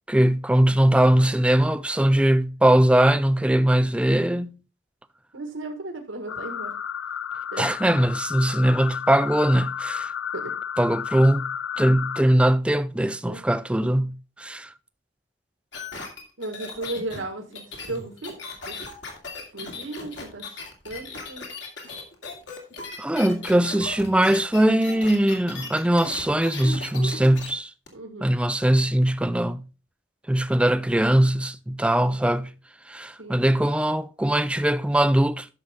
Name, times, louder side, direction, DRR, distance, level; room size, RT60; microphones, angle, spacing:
voice 1, 0.1-4.6 7.6-10.1 10.8-11.5 11.8-14.7 23.0-27.7 28.2-29.6 30.3-32.5 32.9-35.5, right 1 dB, 5° right, 0.3 m, -21 dB
voice 2, 5.3-6.7 7.5-7.7 10.3-10.5 13.2-13.4 16.4-18.3 18.7-18.8 19.5-20.5 20.8-21.5 27.9-28.3 32.0-32.2 33.2-33.4, right 2 dB, 85° right, 1.6 m, -35 dB
sound 1, 6.3-12.2, left 8 dB, 80° left, 0.4 m, -32 dB
sound 2, 15.7-27.5 27.9-28.0, left 3 dB, 65° left, 2.5 m, -37 dB
11.0 x 6.5 x 3.5 m
head